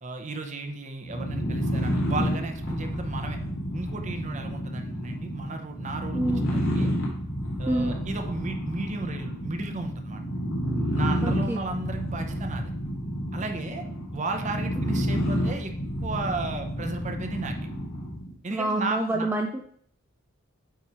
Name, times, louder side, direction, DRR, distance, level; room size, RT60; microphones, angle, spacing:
voice 1, 0.0-3.4 3.7-6.2 6.5-6.9 7.6-10.2 10.9-12.7 13.3-13.8 14.1-15.7 16.0-17.6 18.4-19.3, right 3 dB, 35° right, 5 dB, 0.8 m, -34 dB
sound 1, 1.0-18.3, equal, 60° left, 2.1 m, -29 dB
voice 2, 6.1-6.4 7.7-8.0 11.2-11.6 15.0-15.1 18.5-19.6, right 1 dB, 10° right, 2 dB, 0.4 m, -27 dB
8.3 x 3.2 x 4.3 m, 0.63 s
head